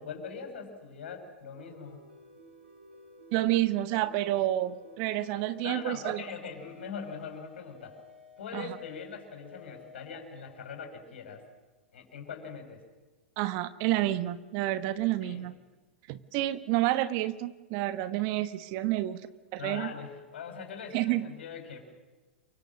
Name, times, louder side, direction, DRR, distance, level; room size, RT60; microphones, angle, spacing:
voice 1, 0.0-2.0 5.6-8.0 8.4-11.4 11.9-12.8 15.2-15.4 19.6-21.9, left 6 dB, 70° left, 4 dB, 6.6 m, -42 dB
sound 1, 1.5-11.9, left 1 dB, 80° right, 7.5 m, -54 dB
voice 2, 3.3-6.2 8.5-8.8 13.4-15.5 16.1-19.2 19.5-19.9 20.9-21.3, right 15 dB, 45° right, 13 dB, 1.2 m, -29 dB
28.5 x 24.0 x 6.5 m, 1.2 s
figure-of-eight pair, 95°, 6 cm